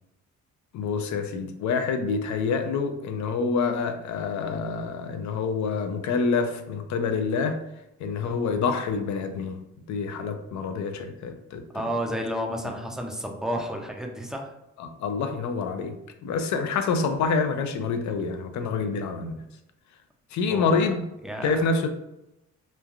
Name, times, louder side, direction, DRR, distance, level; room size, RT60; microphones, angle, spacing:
voice 1, 0.7-7.6 8.0-9.6 9.9-11.6 14.8-19.4 20.3-21.0 21.4-21.9, left 4 dB, 70° left, 7 dB, 0.5 m, -27 dB
voice 2, 11.7-14.5 20.5-20.9 21.2-21.6, equal, ahead, 1 dB, 0.5 m, -31 dB
3.1 x 2.3 x 2.3 m, 0.88 s
cardioid pair, 90°, 30 cm